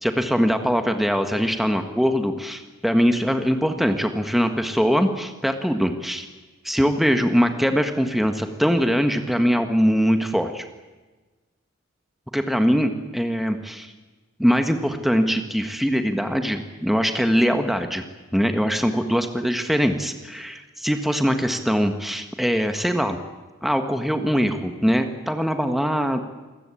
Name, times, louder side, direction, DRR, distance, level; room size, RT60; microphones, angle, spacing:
voice 1, 0.0-6.3 6.6-10.6 12.3-13.9 14.4-18.0 18.3-23.2 23.6-26.2, equal, ahead, 6 dB, 1.6 m, -22 dB
28.0 x 21.5 x 8.6 m, 1.2 s
head